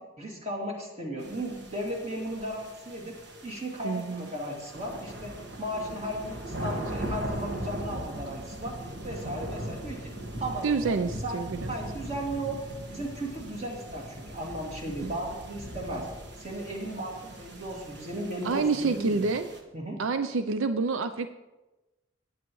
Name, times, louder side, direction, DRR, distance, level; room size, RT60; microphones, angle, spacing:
voice 1, 0.2-3.1 3.4-8.7 9.0-10.1 10.4-11.4 11.7-12.6 12.9-16.1 16.4-19.2 19.7-20.0, right 1 dB, 30° right, -2 dB, 2.4 m, -35 dB
sound 1, 1.2-19.6, right 1 dB, 55° right, 1.5 m, -40 dB
voice 2, 3.8-4.3 10.6-11.8 15.0-15.1 18.4-19.5 20.0-21.3, right 4 dB, 75° right, 9 dB, 0.5 m, -28 dB
18.0 x 8.8 x 3.1 m, 1.1 s
head